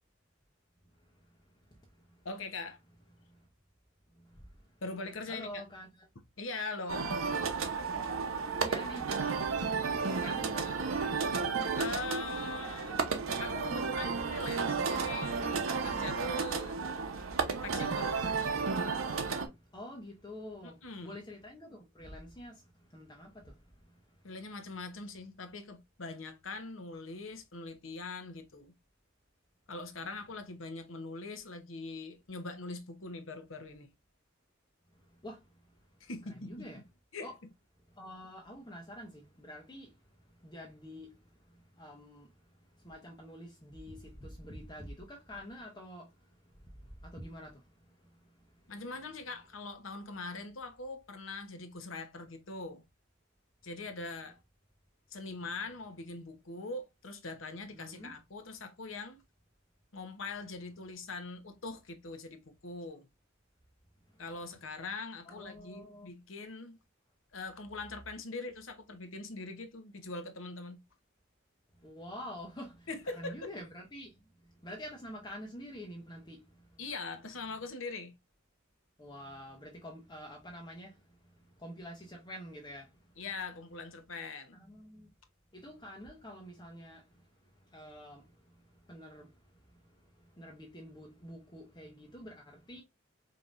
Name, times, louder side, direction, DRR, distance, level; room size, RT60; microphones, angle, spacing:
voice 1, 2.2-2.8 4.8-5.6 6.4-7.1 11.8-13.1 13.4-15.4 15.8-16.8 17.6-18.3 20.6-21.2 24.2-28.7 29.7-33.9 36.0-36.7 37.1-37.3 48.7-52.8 53.6-54.4 55.1-59.2 59.9-63.1 64.2-66.8 67.3-70.8 72.9-73.5 76.8-78.2 83.2-84.6, left 3 dB, 70° left, 0.9 m, -42 dB
voice 2, 4.2-4.5 5.3-6.1 8.5-10.9 19.7-23.6 35.2-35.4 36.3-36.8 37.2-37.3 37.9-40.0 40.4-41.2 41.5-42.3 42.8-46.1 46.6-47.6 57.7-58.1 65.3-66.1 71.8-74.2 74.6-76.8 79.0-81.0 81.4-82.9 84.5-85.1 85.5-87.1 87.7-89.8 90.2-92.8, equal, 20° left, 0.9 m, -47 dB
sound 1, 6.9-19.5, right 5 dB, 90° right, 0.9 m, -33 dB
5.1 x 2.9 x 2.5 m
head